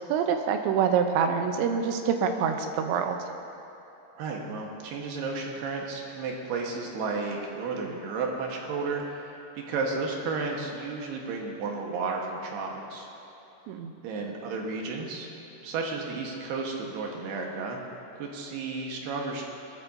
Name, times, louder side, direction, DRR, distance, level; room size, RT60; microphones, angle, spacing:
voice 1, 0.0-3.2 13.7-13.9, right 7 dB, 85° right, 5 dB, 3.0 m, -26 dB
voice 2, 4.2-13.1 14.0-15.3 15.6-17.8 18.1-19.4, right 4 dB, 70° right, 0 dB, 3.2 m, -33 dB
21.0 x 14.0 x 2.7 m, 3.0 s
omnidirectional pair, 5.2 m